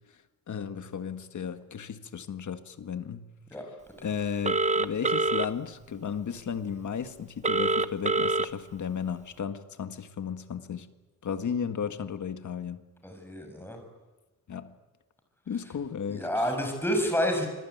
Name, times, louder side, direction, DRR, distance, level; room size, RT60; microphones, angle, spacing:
voice 1, 0.5-3.3 4.0-10.9 11.2-12.8 14.5-14.7 15.5-16.3, left 7 dB, 60° left, 1.7 m, -34 dB
Telephone, 4.4-5.5 7.4-8.5, right 3 dB, 20° right, 0.8 m, -25 dB
voice 2, 13.0-13.8 16.1-17.5, equal, 5° left, 6.6 m, -29 dB
27.0 x 21.0 x 9.4 m
wide cardioid pair, 135°, 34 cm